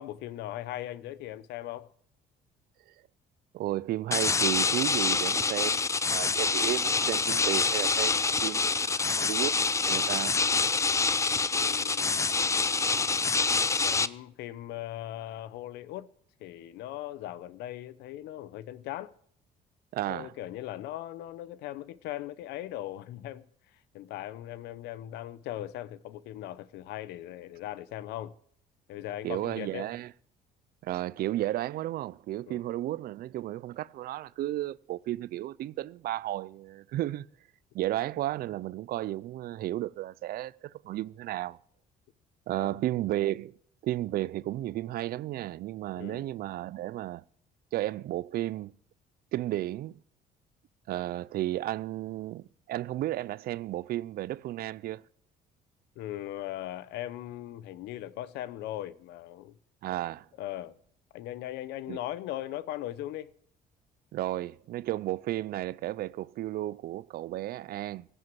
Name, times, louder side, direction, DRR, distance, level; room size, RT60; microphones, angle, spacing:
voice 1, 0.0-1.9 11.6-12.5 13.8-16.1 16.4-19.1 20.1-23.4 23.7-28.3 28.9-29.9 32.5-32.6 42.5-42.7 45.9-46.2 56.0-59.6 60.4-60.8 61.1-63.3, left 13 dB, 85° left, 0.7 m, -39 dB
voice 2, 3.5-5.8 6.1-9.5 9.8-10.4 19.9-20.3 29.2-30.1 30.8-37.3 37.7-41.6 42.5-43.6 43.8-47.2 47.7-48.8 49.3-50.0 50.9-55.0 59.8-60.3 61.9-62.0 64.1-68.1, right 14 dB, 65° right, 0.5 m, -33 dB
sound 1, 4.1-14.1, left 4 dB, 15° left, 0.5 m, -26 dB
17.0 x 8.0 x 7.6 m
cardioid pair, 110°, 17 cm